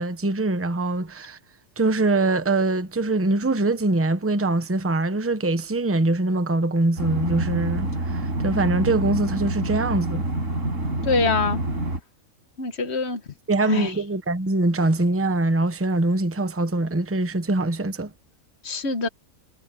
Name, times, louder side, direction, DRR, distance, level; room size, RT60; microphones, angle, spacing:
voice 1, 0.0-1.4 1.8-10.2 13.5-18.1, right 2 dB, 10° right, 0.9 m, -23 dB
sound 1, 7.0-12.0, right 2 dB, 65° right, 6.0 m, -27 dB
voice 2, 11.0-11.6 12.6-13.2 13.6-13.9 18.6-19.1, left 4 dB, 55° left, 1.5 m, -24 dB
omnidirectional pair, 1.4 m